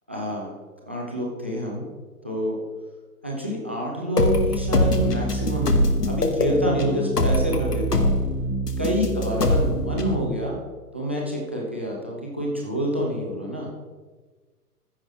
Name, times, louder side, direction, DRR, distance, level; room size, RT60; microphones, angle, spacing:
voice 1, 0.1-0.5 0.9-1.8 2.2-2.6 3.2-8.1 8.8-10.6 10.9-13.7, equal, 10° right, -2 dB, 0.4 m, -27 dB
sound 1, 4.2-10.2, left 1 dB, 90° left, 1.2 m, -23 dB
14.0 x 6.0 x 4.5 m, 1.4 s
figure-of-eight pair, 120°, 46 cm